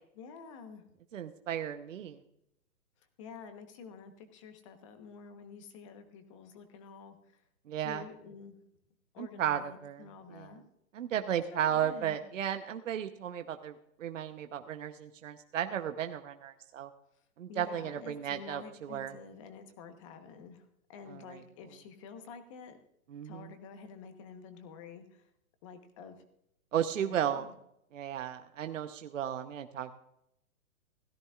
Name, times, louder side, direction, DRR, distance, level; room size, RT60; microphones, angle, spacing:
voice 1, 0.2-0.8 3.2-7.4 7.8-8.6 9.1-10.7 11.5-12.2 17.5-22.8 23.2-25.3 25.6-26.2 27.0-27.5, left 6 dB, 20° left, 8 dB, 1.1 m, -49 dB
voice 2, 1.1-2.2 7.7-8.0 9.2-10.5 10.9-16.9 17.4-19.1 21.1-21.4 23.1-23.5 26.7-27.4 27.9-30.0, right 10 dB, 60° right, 7 dB, 0.9 m, -35 dB
17.0 x 14.0 x 2.4 m, 0.77 s
hypercardioid pair, 160°, 44 cm